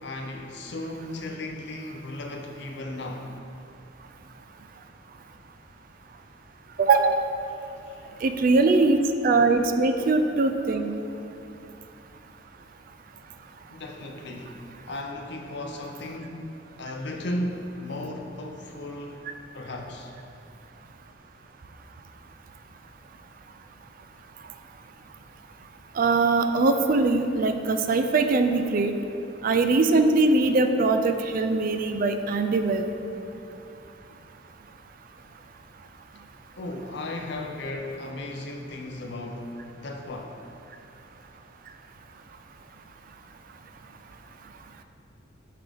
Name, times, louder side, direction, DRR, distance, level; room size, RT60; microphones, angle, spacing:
voice 1, 0.0-3.3 7.6-8.1 13.7-14.6 14.9-19.2 19.5-20.1 36.6-40.4, left 1 dB, 60° left, 3 dB, 0.6 m, -35 dB
voice 2, 6.8-7.2 8.2-9.0 9.2-10.9 26.0-28.9 29.4-32.9, right 3 dB, 45° right, 7 dB, 0.3 m, -21 dB
11.0 x 3.8 x 3.4 m, 2.9 s
head